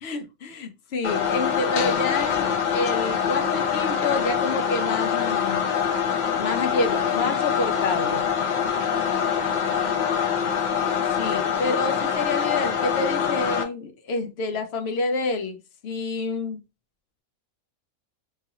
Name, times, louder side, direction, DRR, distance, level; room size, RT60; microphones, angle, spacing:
voice 1, 0.0-5.6 6.3-8.2 11.2-16.6, left 3 dB, 60° left, 0.7 m, -28 dB
sound 1, 1.0-13.6, left 7 dB, 80° left, 0.4 m, -24 dB
voice 2, 8.7-10.5, equal, 5° right, 0.9 m, -47 dB
2.9 x 2.4 x 2.8 m
omnidirectional pair, 1.5 m